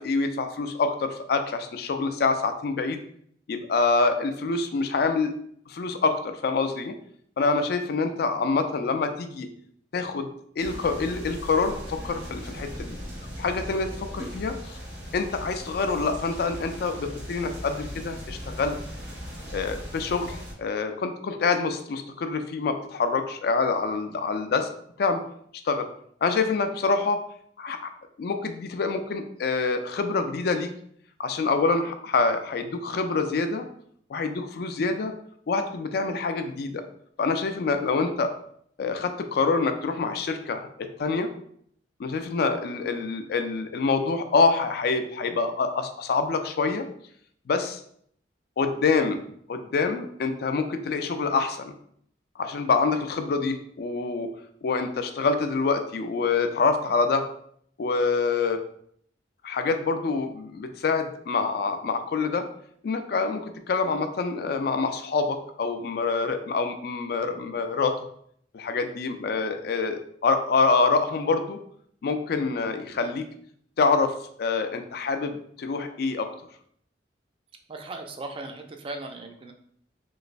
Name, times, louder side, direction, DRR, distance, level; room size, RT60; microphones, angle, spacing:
voice 1, 0.0-3.0 3.5-5.3 5.7-6.9 7.4-9.5 9.9-10.3 10.6-12.9 13.4-14.8 15.1-18.8 19.5-24.7 25.0-25.2 25.6-25.9 26.2-27.2 27.6-27.9 28.2-30.7 31.2-33.6 34.1-35.1 35.5-36.8 37.2-38.3 38.8-41.3 42.0-46.8 47.5-47.8 48.6-49.2 49.5-51.7 52.4-54.3 54.6-57.2 57.8-58.6 59.4-62.5 62.8-67.9 68.5-71.6 72.0-73.3 73.8-76.3, left 4 dB, 60° left, 7 dB, 0.4 m, -26 dB
sound 1, 10.6-20.5, equal, 70° right, 1.1 m, -38 dB
voice 2, 77.7-79.5, right 2 dB, 30° right, 4 dB, 0.4 m, -37 dB
3.1 x 3.0 x 2.5 m, 0.65 s
head